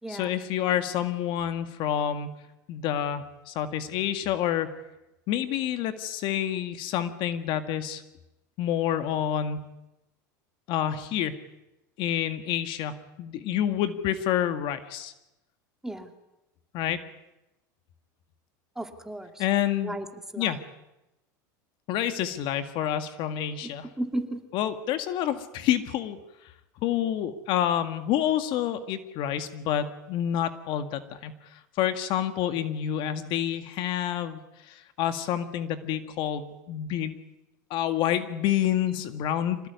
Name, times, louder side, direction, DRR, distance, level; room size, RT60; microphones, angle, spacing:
voice 1, 0.1-2.3 2.7-4.7 5.3-8.0 8.6-9.7 10.7-11.3 12.0-15.1 16.7-17.0 19.4-20.0 20.4-20.6 21.9-23.9 24.5-26.5 26.8-37.2 37.7-39.7, left 10 dB, 55° left, 9 dB, 2.0 m, -28 dB
voice 2, 18.8-19.4 19.8-20.1 20.3-20.5 23.6-23.7 24.0-24.4, right 1 dB, 5° right, 5 dB, 2.7 m, -34 dB
25.5 x 18.5 x 9.6 m, 0.94 s
supercardioid pair, 115°, 10 cm